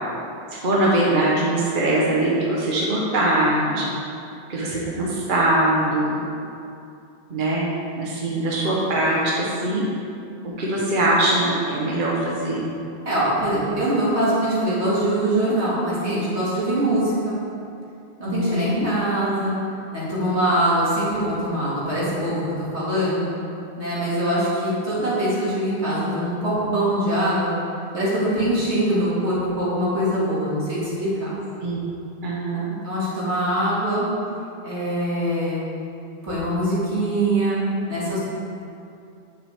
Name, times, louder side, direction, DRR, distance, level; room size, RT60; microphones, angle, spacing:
voice 1, 0.5-3.9 4.5-6.1 7.3-7.7 8.0-9.8 10.6-12.6 18.3-18.9 31.6-31.8 32.2-32.7, right 1 dB, 50° right, -5 dB, 1.2 m, -22 dB
voice 2, 13.0-17.4 18.2-19.5 19.9-23.3 23.8-27.5 27.9-31.3 32.8-34.1 34.6-35.6 36.2-38.2, right 1 dB, 85° right, -8 dB, 2.7 m, -23 dB
9.0 x 7.3 x 3.5 m, 2.6 s
omnidirectional pair, 1.1 m